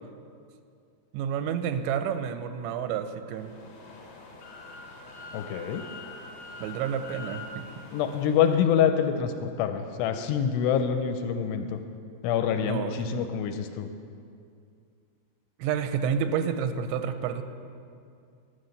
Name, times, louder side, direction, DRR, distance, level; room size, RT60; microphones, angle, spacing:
voice 1, 1.1-3.5 6.6-7.7 12.5-13.2 15.6-17.4, right 7 dB, 85° right, 9 dB, 2.9 m, -30 dB
sound 1, 3.3-8.6, left 2 dB, 55° left, 1.9 m, -44 dB
voice 2, 5.3-5.8 7.9-11.8 12.2-13.9, left 8 dB, 85° left, 7 dB, 2.6 m, -26 dB
11.5 x 7.7 x 6.5 m, 2.4 s
omnidirectional pair, 5.0 m